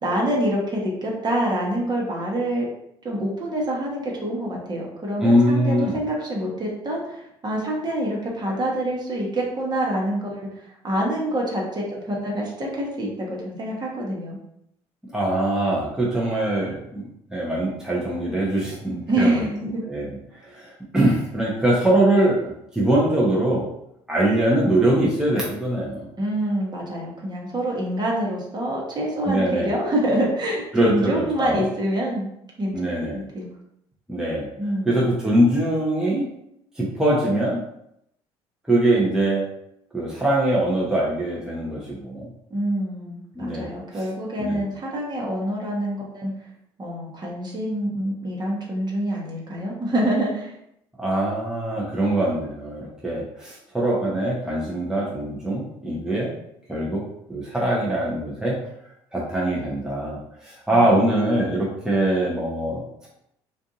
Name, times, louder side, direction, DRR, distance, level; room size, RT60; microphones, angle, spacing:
voice 1, 0.0-2.7 3.0-14.4 19.1-19.8 26.2-32.3 32.6-32.7 33.1-33.5 34.6-35.0 42.5-46.3 46.8-50.5, right 1 dB, 30° right, -3 dB, 1.0 m, -26 dB
voice 2, 5.2-6.0 15.1-19.4 19.8-20.2 20.4-23.7 24.1-26.1 29.3-29.7 30.7-31.6 32.7-33.2 34.1-34.5 34.8-36.3 36.8-37.6 38.7-39.4 39.9-42.3 43.3-43.7 44.4-44.6 51.0-56.3 56.7-58.6 59.1-63.1, right 1 dB, 5° right, -5 dB, 0.8 m, -22 dB
2.6 x 2.5 x 2.4 m, 0.76 s
hypercardioid pair, 60°, 14 cm